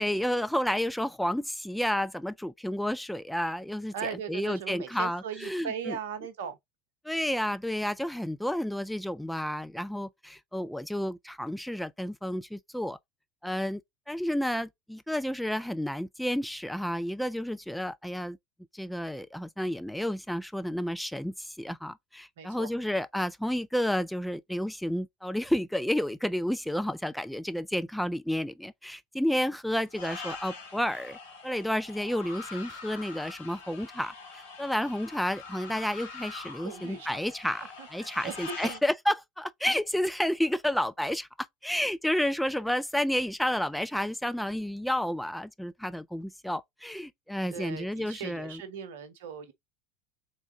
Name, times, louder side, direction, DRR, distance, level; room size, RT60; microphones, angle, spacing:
voice 1, 0.0-6.0 7.0-13.0 13.4-13.8 14.1-18.4 18.7-31.2 31.4-48.6, equal, ahead, 0.4 m, -31 dB
voice 2, 3.9-6.6 22.4-22.7 36.6-37.2 37.8-38.4 38.6-38.8 47.5-49.5, right 7 dB, 65° right, 0.8 m, -38 dB
sound 1, 29.9-38.8, left 4 dB, 65° left, 1.3 m, -44 dB
3.6 x 3.5 x 3.7 m
figure-of-eight pair, 70°, 0 cm